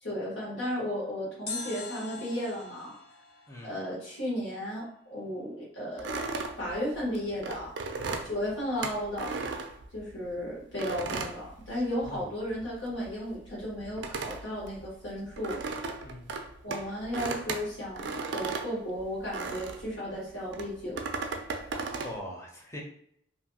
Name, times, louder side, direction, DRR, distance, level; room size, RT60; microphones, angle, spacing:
voice 1, 0.0-2.9 3.6-6.1 6.6-7.7 8.2-9.3 9.9-15.6 16.6-21.0, equal, 75° left, -6 dB, 1.2 m, -34 dB
sound 1, 1.5-4.5 4.8-4.9, left 4 dB, 55° left, 0.7 m, -42 dB
sound 2, 6.0-10.3 10.8-12.3 12.5-19.9 20.5-22.2, right 4 dB, 70° right, 0.3 m, -36 dB
voice 2, 16.0-16.3 22.0-22.8, equal, 15° left, -1 dB, 0.5 m, -42 dB
2.6 x 2.6 x 2.7 m, 0.68 s
head